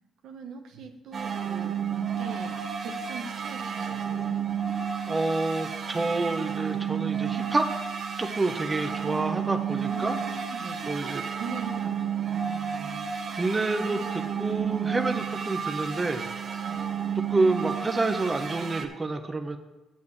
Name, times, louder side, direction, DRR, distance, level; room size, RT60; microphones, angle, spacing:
voice 1, 0.2-2.5 2.8-4.3 6.0-6.1 9.9-11.9 12.2-13.0 13.8-14.0 15.2-15.3 16.6-16.8, right 5 dB, 80° right, 5 dB, 1.1 m, -41 dB
sound 1, 1.1-18.9, right 7 dB, 45° right, 1.0 m, -31 dB
voice 2, 5.1-7.7 8.2-10.2 10.8-11.2 13.3-16.2 17.3-19.6, right 3 dB, 25° right, 6 dB, 0.9 m, -28 dB
7.5 x 6.5 x 7.1 m, 1.1 s
cardioid pair, 90°, 0 cm